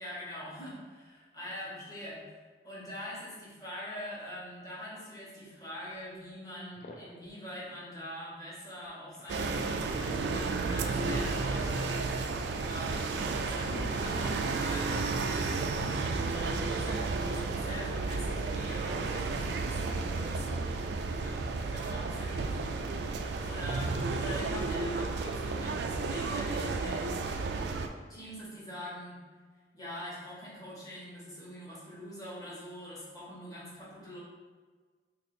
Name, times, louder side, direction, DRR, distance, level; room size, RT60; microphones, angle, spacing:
voice 1, 0.0-2.2 2.6-12.1 12.6-22.8 23.4-27.2 28.1-29.2 29.7-34.2, equal, 20° left, -7 dB, 1.1 m, -44 dB
sound 1, 6.6-7.4 8.8-9.7 10.9-12.3 12.9-13.0 13.3-14.5, left 1 dB, 45° left, 0.4 m, -50 dB
sound 2, 9.3-27.9, right 3 dB, 70° right, 0.3 m, -32 dB
2.9 x 2.6 x 4.1 m, 1.5 s
head